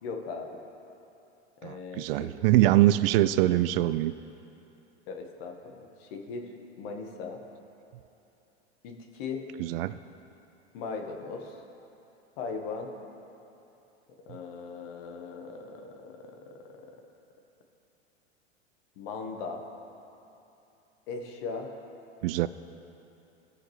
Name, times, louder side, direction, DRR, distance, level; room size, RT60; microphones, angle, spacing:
voice 1, 0.0-0.6 1.6-2.3 5.1-7.4 8.8-9.5 10.7-11.6 12.4-12.9 14.2-16.9 19.0-19.6 21.1-21.7, left 4 dB, 55° left, 4 dB, 1.5 m, -39 dB
voice 2, 1.6-4.1 9.6-10.0 22.2-22.5, right 15 dB, 60° right, 15 dB, 0.4 m, -23 dB
18.0 x 6.4 x 3.3 m, 2.9 s
hypercardioid pair, 100°, 34 cm